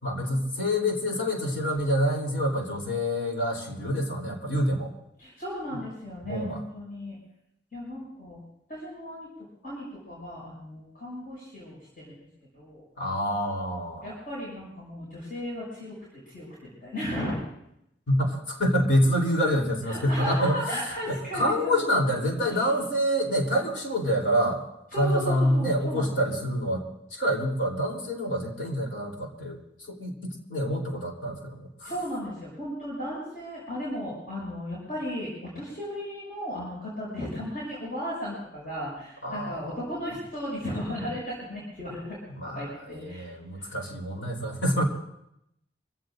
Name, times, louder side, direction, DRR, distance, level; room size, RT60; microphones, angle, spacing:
voice 1, 0.0-4.9 6.3-6.6 13.0-14.1 18.1-20.6 21.1-24.6 25.0-26.8 27.1-29.6 29.9-30.1 30.5-31.9 39.2-39.8 42.4-44.8, equal, 85° left, -1 dB, 3.5 m, -27 dB
voice 2, 5.2-7.2 7.7-8.4 8.7-9.3 9.6-12.2 12.5-12.8 14.0-17.4 19.9-21.8 22.5-22.7 24.9-26.3 31.8-42.2 42.5-43.2 43.5-43.7, equal, 55° left, -7 dB, 6.8 m, -35 dB
25.5 x 17.0 x 2.6 m, 0.79 s
head